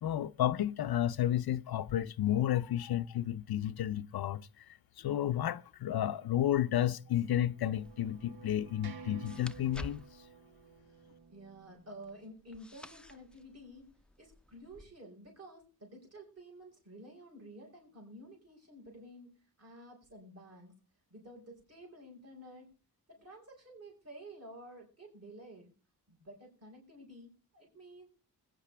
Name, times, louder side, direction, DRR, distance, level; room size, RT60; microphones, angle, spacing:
voice 1, 0.0-4.6 5.0-10.0, left 12 dB, 75° left, 0.6 m, -32 dB
sound 1, 6.6-12.3, right 5 dB, 80° right, 1.2 m, -53 dB
sound 2, 7.7-14.8, left 1 dB, 5° left, 0.6 m, -52 dB
voice 2, 10.9-13.9 14.2-20.7 21.1-22.7 23.1-25.7 26.1-28.1, right 1 dB, 40° right, 5.1 m, -52 dB
20.5 x 9.2 x 3.4 m
wide cardioid pair, 95°, 37 cm